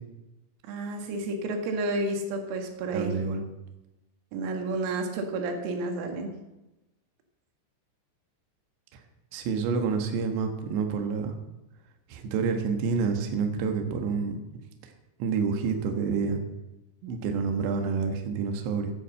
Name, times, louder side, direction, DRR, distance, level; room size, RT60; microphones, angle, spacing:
voice 1, 0.7-3.1 4.3-6.3, right 2 dB, 90° right, 4 dB, 4.5 m, -31 dB
voice 2, 2.9-3.4 9.3-11.3 12.1-14.4 15.2-16.4 17.0-18.9, right 5 dB, 70° right, 5 dB, 3.3 m, -28 dB
11.0 x 10.5 x 7.5 m, 1.0 s
omnidirectional pair, 6.0 m